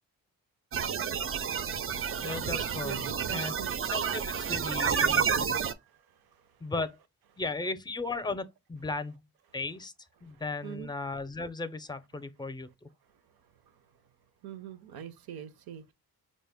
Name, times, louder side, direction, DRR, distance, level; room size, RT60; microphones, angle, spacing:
sound 1, 0.7-5.7, right 7 dB, 40° right, 0.4 m, -30 dB
voice 1, 2.2-3.5 3.9-5.7 6.6-7.0 7.4-9.2 9.5-9.9 10.2-12.7, left 3 dB, 10° left, 0.5 m, -36 dB
voice 2, 2.8-3.7 5.5-6.7 10.2-10.9 13.7-13.9 14.4-15.9, right 10 dB, 80° right, 0.7 m, -44 dB
5.1 x 2.1 x 3.4 m
cardioid pair, 70°, 37 cm